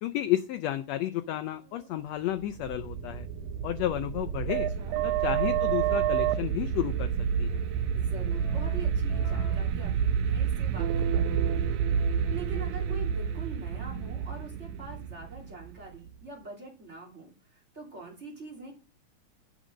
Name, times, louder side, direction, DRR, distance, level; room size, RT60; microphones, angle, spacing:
voice 1, 0.0-3.3 3.6-4.7 5.0-7.1 7.4-7.6, left 13 dB, 90° left, 10 dB, 1.5 m, -31 dB
sound 1, 2.4-16.1, right 8 dB, 90° right, 2.4 m, -29 dB
Keyboard (musical), 2.8-11.2, left 5 dB, 75° left, 3.6 m, -50 dB
voice 2, 4.5-5.0 7.9-18.8, right 2 dB, 20° right, -2 dB, 2.9 m, -44 dB
9.0 x 6.3 x 5.0 m, 0.34 s
omnidirectional pair, 3.6 m